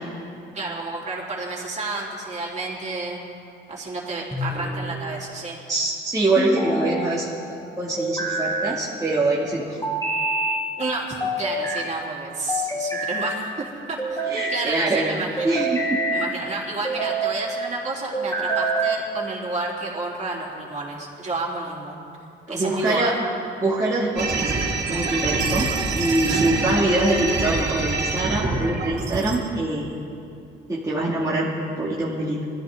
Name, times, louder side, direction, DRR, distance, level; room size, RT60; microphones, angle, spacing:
voice 1, 0.5-3.2 3.7-5.6 10.8-15.6 16.1-22.1 22.5-23.1 26.3-26.5, right 3 dB, 35° right, -4 dB, 3.8 m, -30 dB
sound 1, 4.3-5.0 6.3-7.1 8.0-8.8 9.8-10.6 11.2-11.9 12.5-13.3 14.0-14.6 15.4-16.3 16.8-17.4 18.1-19.0, right 2 dB, 15° left, 3.1 m, -26 dB
voice 2, 5.7-9.8 14.3-15.1 15.4-16.0 22.5-23.2 23.6-25.7 25.9-29.9 30.7-32.4, right 2 dB, 15° right, -7 dB, 2.4 m, -24 dB
sound 2, 24.2-29.4, right 3 dB, 55° right, 3.0 m, -25 dB
21.5 x 14.0 x 3.9 m, 2.6 s
cardioid pair, 90°, 20 cm